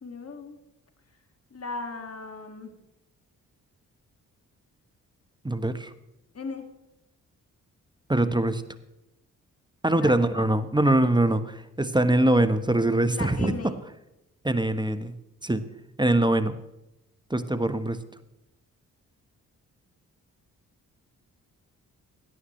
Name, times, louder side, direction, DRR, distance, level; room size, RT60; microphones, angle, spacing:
voice 1, 0.0-0.6 1.5-2.7 6.3-6.7 9.9-10.1 13.1-13.8, left 4 dB, 40° left, 4 dB, 2.3 m, -37 dB
voice 2, 5.4-5.9 8.1-8.6 9.8-13.7 14.4-15.1 15.4-15.6 16.0-16.6 17.3-18.0, right 1 dB, 10° right, 11 dB, 1.1 m, -23 dB
17.0 x 11.5 x 3.2 m, 0.88 s
hypercardioid pair, 40°, 38 cm